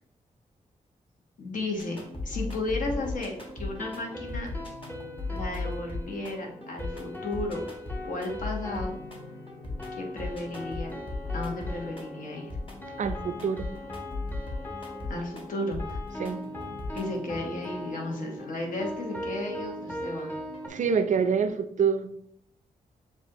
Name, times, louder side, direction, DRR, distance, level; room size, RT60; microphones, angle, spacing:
voice 1, 1.4-4.5 5.3-7.6 8.0-9.0 9.9-11.0 11.3-12.5 15.1-16.0 16.9-20.3, left 2 dB, 65° left, 0 dB, 1.2 m, -34 dB
sound 1, 1.7-21.5, left 2 dB, 35° left, 1.3 m, -38 dB
sound 2, 3.0-20.7, left 1 dB, 15° left, 0.8 m, -40 dB
voice 2, 13.0-13.7 16.2-16.4 20.7-22.2, right 6 dB, 55° right, 9 dB, 0.5 m, -26 dB
7.1 x 2.5 x 2.9 m, 0.69 s
cardioid pair, 85°, 15 cm